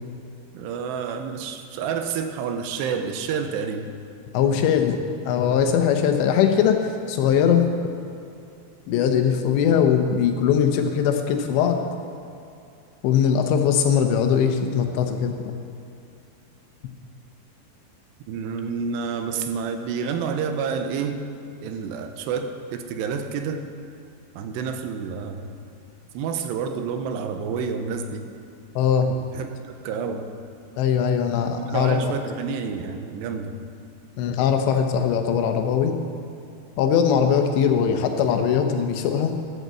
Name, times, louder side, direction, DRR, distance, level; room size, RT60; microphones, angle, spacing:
voice 1, 0.5-3.9 18.3-21.2 21.6-23.6 24.4-25.5 26.1-28.3 29.3-30.3 31.6-33.5, right 6 dB, 85° right, 6 dB, 2.9 m, -29 dB
voice 2, 4.3-5.0 5.3-7.7 8.9-11.8 13.0-15.4 28.8-29.1 30.8-32.0 34.2-36.0 36.8-39.3, left 8 dB, 90° left, 5 dB, 3.2 m, -20 dB
12.5 x 8.2 x 7.6 m, 2.6 s
omnidirectional pair, 4.9 m